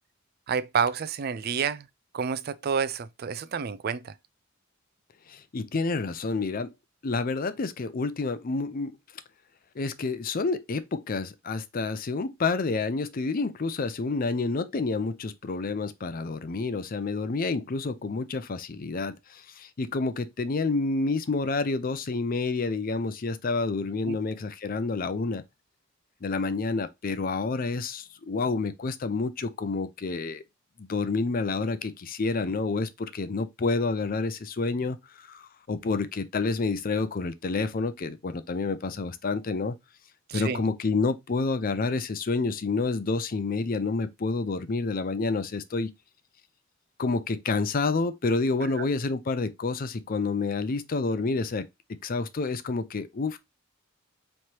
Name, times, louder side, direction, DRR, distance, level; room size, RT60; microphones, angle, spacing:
voice 1, 0.5-1.9 2.1-4.1 24.1-24.2 40.3-40.6 48.8-48.9, right 6 dB, 50° right, 0.4 m, -29 dB
voice 2, 5.3-6.7 7.0-8.9 9.8-25.4 26.2-30.4 30.8-39.7 40.3-45.9 47.0-51.7 52.0-53.4, left 3 dB, 45° left, 0.5 m, -29 dB
4.5 x 3.2 x 2.8 m
head